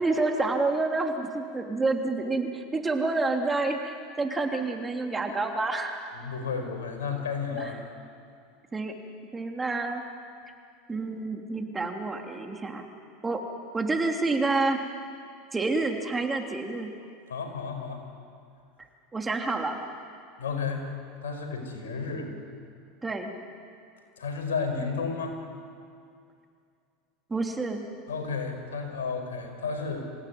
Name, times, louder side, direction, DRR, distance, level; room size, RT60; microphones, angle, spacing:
voice 1, 0.0-6.0 7.6-7.7 8.7-8.9 9.3-10.0 10.9-12.9 13.2-13.4 13.7-14.9 15.5-16.9 19.1-19.8 23.0-23.3 27.3-27.8, right 3 dB, 15° right, 3 dB, 3.2 m, -28 dB
voice 2, 6.1-7.7 17.3-18.0 20.4-20.8 21.2-22.3 24.2-25.4 28.1-30.0, left 5 dB, 90° left, 4 dB, 5.1 m, -32 dB
27.0 x 17.5 x 9.6 m, 2.3 s
hypercardioid pair, 95°, 0 cm